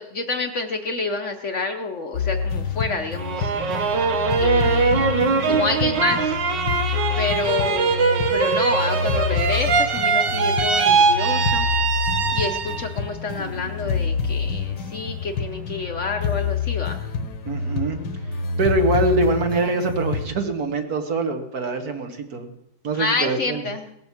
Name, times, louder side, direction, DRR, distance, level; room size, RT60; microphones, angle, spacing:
voice 1, 0.0-3.5 4.3-5.1 5.5-6.3 7.2-11.7 12.3-17.1 22.9-23.9, left 3 dB, 50° left, 5 dB, 1.0 m, -28 dB
sound 1, 2.1-20.3, left 5 dB, 75° left, 1.7 m, -27 dB
sound 2, 3.2-13.0 13.4-14.1, right 5 dB, 85° right, 1.8 m, -22 dB
voice 2, 17.5-18.1 18.6-22.5 22.8-23.7, right 3 dB, 60° right, 5 dB, 1.8 m, -24 dB
18.0 x 7.9 x 7.3 m, 0.88 s
omnidirectional pair, 1.9 m